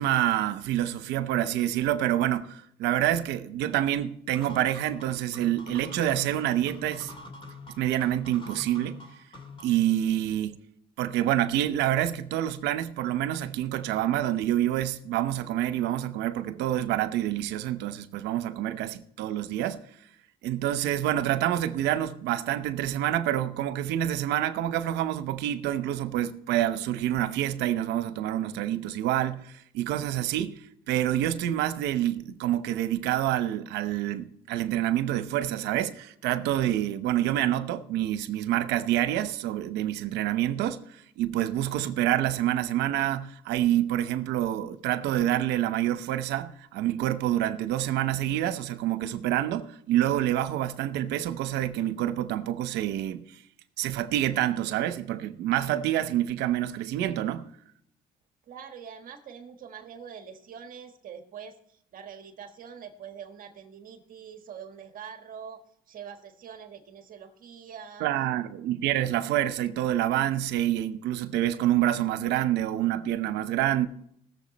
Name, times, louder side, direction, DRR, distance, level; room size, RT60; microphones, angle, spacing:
voice 1, 0.0-7.1 7.7-9.0 9.6-10.6 11.0-19.8 20.4-30.6 30.9-40.8 41.2-53.2 53.8-57.4 68.0-73.9, right 12 dB, 85° right, 0.9 m, -27 dB
sound 1, 4.3-9.9, left 2 dB, 30° left, 2.5 m, -45 dB
voice 2, 58.5-68.3, right 7 dB, 55° right, 1.5 m, -44 dB
19.5 x 7.3 x 4.1 m
cardioid pair, 110°, 17 cm